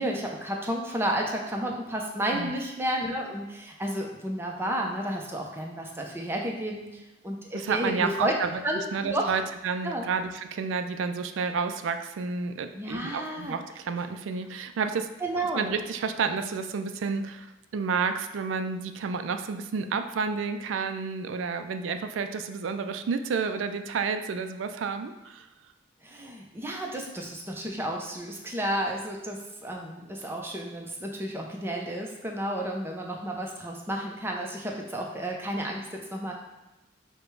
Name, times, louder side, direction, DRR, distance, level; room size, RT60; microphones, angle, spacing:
voice 1, 0.0-8.3 8.6-9.3 9.8-10.0 12.7-13.6 15.2-15.7 26.0-36.3, right 1 dB, 15° right, 0 dB, 0.6 m, -32 dB
voice 2, 7.5-8.5 8.9-15.1 15.5-17.5 17.7-25.4, right 5 dB, 85° right, 8 dB, 0.3 m, -30 dB
4.9 x 2.2 x 4.6 m, 0.99 s
head